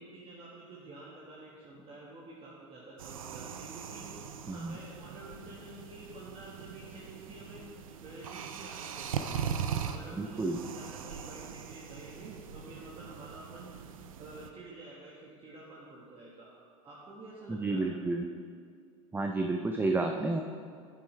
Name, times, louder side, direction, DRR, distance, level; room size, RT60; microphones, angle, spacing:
voice 1, 0.0-7.7 8.0-9.5 9.8-13.7 14.2-17.9, right 2 dB, 30° right, -5 dB, 1.6 m, -49 dB
sound 1, 3.0-14.5, right 7 dB, 85° right, 0.5 m, -40 dB
voice 2, 10.2-10.6 17.5-18.3 19.1-20.4, right 2 dB, 10° right, 3 dB, 0.5 m, -31 dB
9.1 x 8.8 x 3.3 m, 2.1 s
hypercardioid pair, 85°, 17 cm